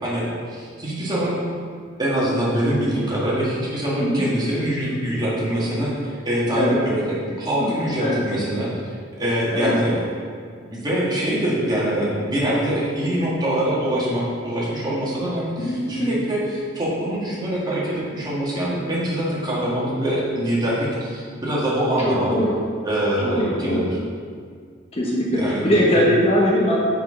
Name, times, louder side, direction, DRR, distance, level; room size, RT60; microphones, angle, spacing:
voice 1, 0.0-1.4 2.0-8.7 9.2-10.0 10.7-22.3 22.8-23.9 25.3-25.6, right 1 dB, 20° right, -7 dB, 1.8 m, -24 dB
voice 2, 15.6-16.2 22.0-22.5 23.2-23.8 24.9-26.8, equal, 30° left, -4 dB, 1.0 m, -21 dB
6.1 x 5.4 x 5.5 m, 2.1 s
head